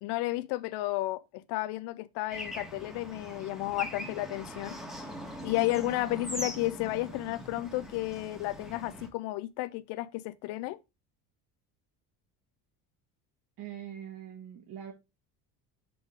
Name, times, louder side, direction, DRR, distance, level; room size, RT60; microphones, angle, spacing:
voice 1, 0.0-4.8 5.4-10.8, left 18 dB, 85° left, 0.6 m, -32 dB
Bird / Traffic noise roadway noise, 2.3-9.1, equal, ahead, 1.4 m, -41 dB
voice 2, 13.6-14.9, right 10 dB, 60° right, 1.7 m, -43 dB
6.0 x 3.6 x 4.8 m
cardioid pair, 130°, 40 cm